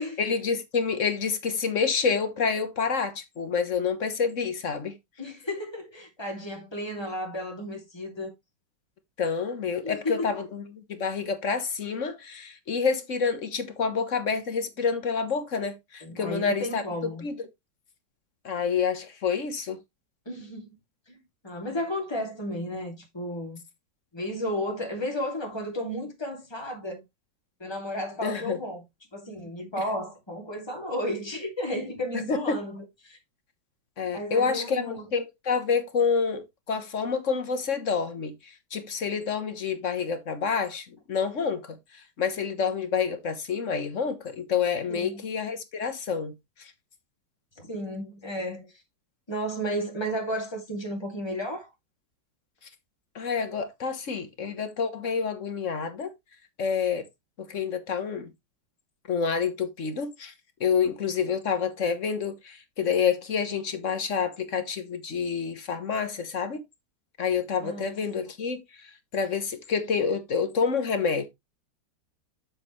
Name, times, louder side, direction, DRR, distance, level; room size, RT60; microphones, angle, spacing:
voice 1, 0.2-4.9 9.2-17.3 18.4-19.8 28.2-28.6 32.1-32.6 34.0-38.3 38.7-41.8 42.2-46.3 53.1-56.1 56.6-57.1 57.5-58.3 59.1-60.3 60.6-66.6 67.2-68.6 69.1-71.3, left 6 dB, 45° left, 1.5 m, -28 dB
voice 2, 5.2-8.3 9.8-10.3 16.0-17.3 20.3-20.8 21.1-23.6 24.1-27.0 27.6-28.8 29.1-33.2 34.1-35.1 44.9-45.2 47.6-48.7 49.3-51.7 67.6-68.2, equal, 15° left, 2.7 m, -33 dB
7.7 x 7.3 x 3.1 m
omnidirectional pair, 2.0 m